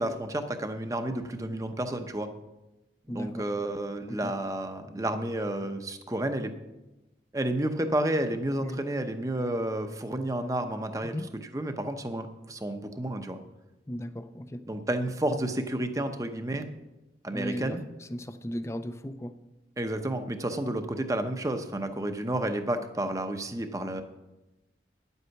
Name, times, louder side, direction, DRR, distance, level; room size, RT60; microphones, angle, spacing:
voice 1, 0.0-2.3 3.1-6.5 7.3-11.2 11.5-13.4 14.7-16.7 17.2-17.8 19.8-24.0, right 1 dB, 20° right, 7 dB, 0.7 m, -31 dB
voice 2, 3.1-3.5 4.1-4.3 8.6-8.8 11.0-11.3 13.9-14.6 17.3-19.4, equal, 15° left, 11 dB, 0.5 m, -36 dB
10.5 x 8.1 x 5.8 m, 1.0 s
head